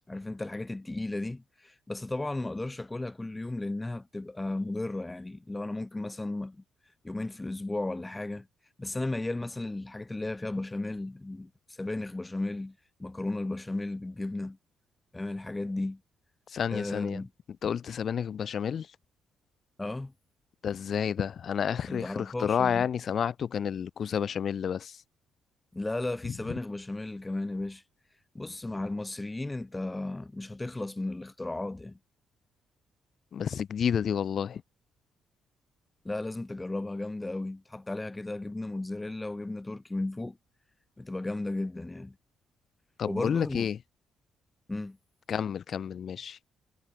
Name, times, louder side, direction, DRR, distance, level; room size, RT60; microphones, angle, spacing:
voice 1, 0.1-6.6 7.0-8.5 8.8-12.7 13.0-14.6 15.1-16.0 16.7-17.3 19.8-20.1 21.9-22.9 25.7-27.8 28.3-32.0 36.0-40.4 41.0-42.1 43.1-43.7 44.7-45.0, left 2 dB, 15° left, 0.8 m, -34 dB
voice 2, 16.5-17.2 17.6-18.9 20.6-25.0 33.3-34.6 43.0-43.8 45.3-46.4, left 8 dB, 55° left, 0.4 m, -30 dB
cardioid pair, 90°, 0 cm